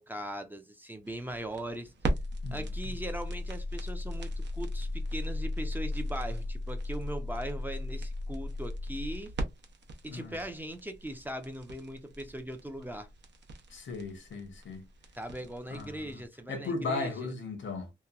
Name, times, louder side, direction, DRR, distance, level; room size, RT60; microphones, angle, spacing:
voice 1, 0.0-1.9 2.5-9.3 10.0-13.1 15.2-17.3, right 1 dB, 10° right, 0.5 m, -40 dB
sound 1, 1.1-16.2, left 1 dB, 65° right, 0.7 m, -36 dB
voice 2, 2.4-2.9 10.1-10.4 13.7-14.8 15.7-16.2 16.5-17.9, left 3 dB, 80° left, 0.9 m, -37 dB
2.9 x 2.2 x 2.3 m
wide cardioid pair, 105°, 19 cm